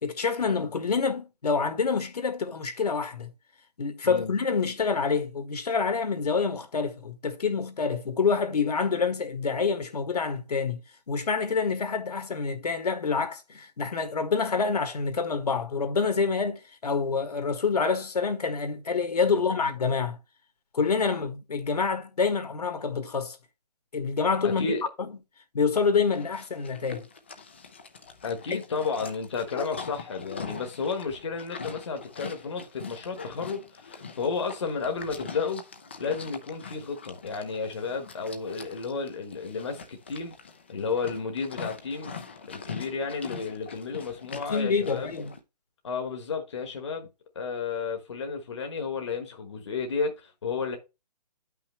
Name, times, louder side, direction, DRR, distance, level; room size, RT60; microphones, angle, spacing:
voice 1, 0.0-3.3 3.8-10.8 11.1-20.2 20.7-23.4 23.9-24.7 25.5-27.1 28.5-28.6 44.5-45.3, left 5 dB, 70° left, 1.7 m, -27 dB
voice 2, 24.4-24.8 28.2-35.6 36.0-40.3 40.7-42.2 42.5-45.1 45.8-47.1 47.3-50.8, left 5 dB, 45° left, 1.2 m, -32 dB
Livestock farm animals working animals, 26.1-45.4, left 5 dB, 15° left, 0.5 m, -43 dB
9.9 x 5.8 x 3.2 m
hypercardioid pair, 175°, 21 cm